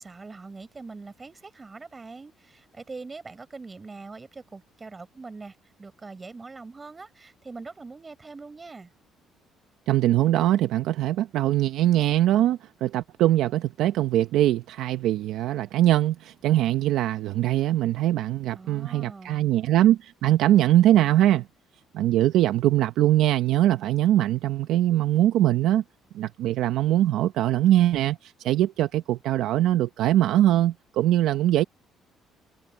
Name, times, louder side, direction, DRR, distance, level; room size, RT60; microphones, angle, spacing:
voice 1, 0.0-8.9 18.5-19.5, right 3 dB, 20° right, 6.2 m, -43 dB
voice 2, 9.9-21.4 21.9-25.8 26.1-31.6, right 13 dB, 80° right, 0.7 m, -22 dB
cardioid pair, 135°, 0 cm